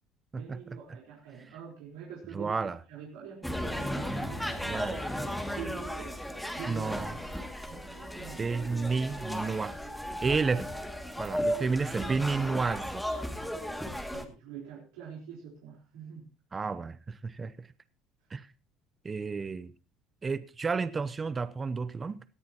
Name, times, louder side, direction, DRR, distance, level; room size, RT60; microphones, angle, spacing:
voice 1, 0.3-7.2 7.7-8.5 10.2-10.5 11.4-12.1 14.1-16.3, right 7 dB, 90° right, 4.1 m, -46 dB
voice 2, 2.3-2.8 4.6-5.0 6.7-7.2 8.4-9.7 10.2-10.6 11.2-13.1 16.5-17.5 18.3-18.5 19.0-19.7 20.2-22.2, right 4 dB, 25° right, 0.7 m, -31 dB
sound 1, 3.4-14.3, equal, 5° left, 2.3 m, -35 dB
18.5 x 13.5 x 3.0 m
supercardioid pair, 95°, 0 cm